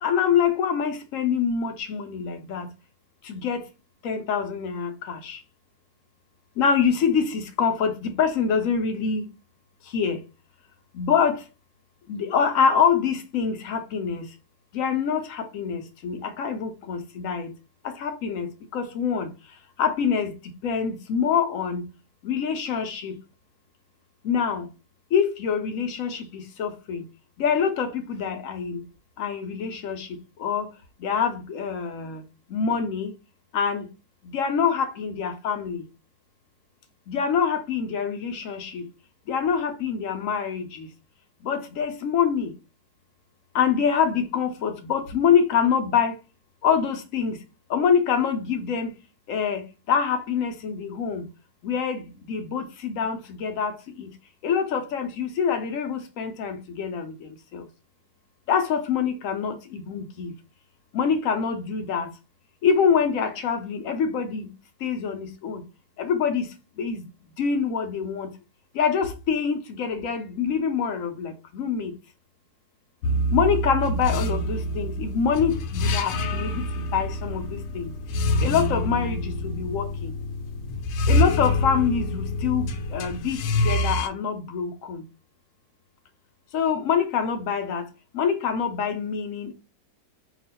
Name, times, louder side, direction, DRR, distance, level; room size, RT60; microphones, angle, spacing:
voice 1, 0.0-2.7 3.3-3.6 4.0-5.4 6.6-9.2 9.9-10.2 10.9-11.4 12.1-14.3 14.7-17.5 17.8-19.3 19.8-20.3 20.6-21.8 22.2-23.1 24.2-24.6 25.1-27.0 27.4-28.8 29.2-30.1 30.4-30.7 31.0-32.2 32.5-33.1 33.5-33.9 34.3-35.8 37.1-38.8 39.3-40.9 41.4-42.5 43.5-46.1 46.6-47.4 47.7-48.9 49.3-49.6 49.9-51.3 51.6-52.0 52.3-54.1 54.4-57.6 58.5-60.3 60.9-62.1 62.6-64.5 64.8-65.6 66.0-66.5 66.8-67.0 67.4-68.3 68.8-71.9 73.3-77.9 78.4-80.1 81.1-85.0 86.5-87.8 88.1-89.5, left 6 dB, 65° left, 0.9 m, -25 dB
sound 1, 73.0-84.1, left 1 dB, 80° left, 1.1 m, -26 dB
3.0 x 2.4 x 4.1 m
omnidirectional pair, 1.8 m